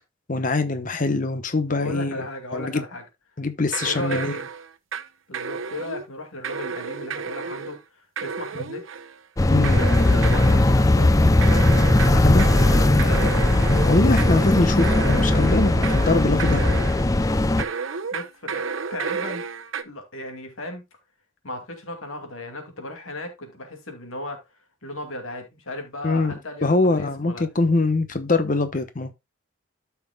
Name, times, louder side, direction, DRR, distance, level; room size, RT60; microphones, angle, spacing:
voice 1, 0.3-2.3 2.5-2.8 3.4-4.4 9.5-9.8 12.2-12.5 13.8-16.7 26.0-26.3 26.6-29.1, left 3 dB, 40° left, 1.0 m, -23 dB
voice 2, 1.7-3.0 3.8-4.3 5.3-7.8 8.2-8.8 9.7-11.6 11.9-13.4 18.1-18.6 18.9-20.8 21.4-24.4 24.8-27.4, left 1 dB, 85° left, 2.4 m, -35 dB
sound 1, 3.7-5.1 5.3-6.1 6.4-7.8 8.2-9.2 9.6-10.8 11.4-17.1 17.6-19.8, right 5 dB, 75° right, 0.8 m, -31 dB
sound 2, 9.4-17.6, left 2 dB, 15° left, 0.4 m, -18 dB
13.0 x 5.8 x 2.3 m
head